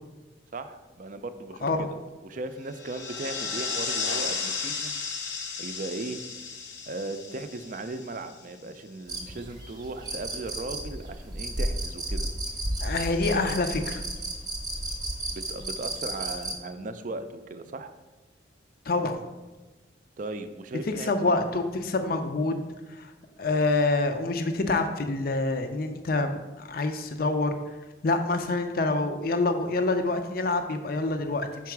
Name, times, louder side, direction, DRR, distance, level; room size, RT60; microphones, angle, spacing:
voice 1, 0.5-5.0 5.6-6.2 6.9-12.2 15.3-17.9 20.2-21.1, right 2 dB, 45° right, 10 dB, 0.4 m, -37 dB
sound 1, 2.7-8.5, left 5 dB, 80° left, 0.9 m, -34 dB
sound 2, 9.1-16.5, right 1 dB, 20° right, 0.8 m, -33 dB
voice 2, 12.8-14.0 18.9-19.2 20.9-22.6 22.9-23.1 23.4-27.6 28.0-31.7, left 2 dB, 50° left, 7 dB, 0.5 m, -26 dB
5.9 x 4.6 x 4.6 m, 1.2 s
head